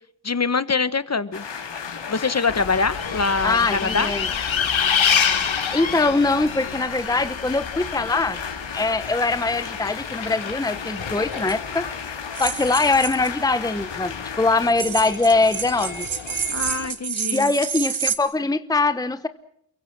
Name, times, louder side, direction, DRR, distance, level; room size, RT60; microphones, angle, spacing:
voice 1, 0.2-1.4 2.1-4.1 16.5-17.5, left 4 dB, 35° left, 15 dB, 1.2 m, -24 dB
sound 1, 1.3-14.7, left 6 dB, 65° left, 3.2 m, -34 dB
Bus, 2.5-16.9, left 7 dB, 85° left, 3.2 m, -29 dB
voice 2, 3.4-4.3 5.7-8.4 8.7-11.9 12.4-16.1 17.3-19.3, left 3 dB, 10° left, 12 dB, 0.9 m, -22 dB
sound 2, 11.4-11.5 12.4-13.3 14.7-18.2, right 7 dB, 80° right, 2.3 m, -29 dB
29.5 x 23.5 x 6.1 m, 0.73 s
wide cardioid pair, 175°, 46 cm